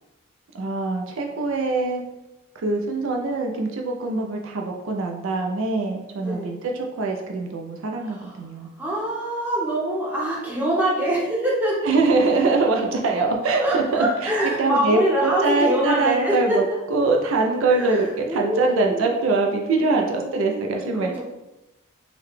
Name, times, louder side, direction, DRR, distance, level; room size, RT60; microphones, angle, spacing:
voice 1, 0.5-2.0 2.6-8.7 11.9-14.3 14.6-16.6 16.9-21.2, right 3 dB, 65° right, 1 dB, 0.4 m, -23 dB
voice 2, 6.2-6.5 8.0-11.8 13.6-16.6 17.6-19.3 19.8-21.2, right 1 dB, 10° right, -5 dB, 0.7 m, -25 dB
3.8 x 2.1 x 3.1 m, 0.95 s
head